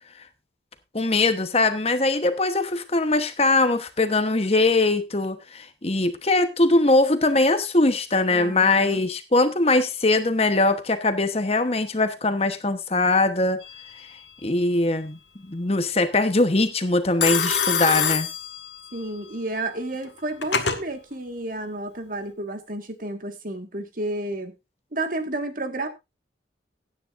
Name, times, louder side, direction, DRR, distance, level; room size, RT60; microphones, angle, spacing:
voice 1, 0.9-13.6 14.4-15.2 15.5-18.3, left 2 dB, 35° left, 1.1 m, -21 dB
voice 2, 8.3-9.0 18.9-24.5 24.9-25.9, right 2 dB, 45° right, 1.7 m, -31 dB
Telephone, 13.6-14.1 17.2-19.1 20.0-20.8, left 7 dB, 70° left, 1.8 m, -26 dB
16.0 x 9.9 x 2.6 m
head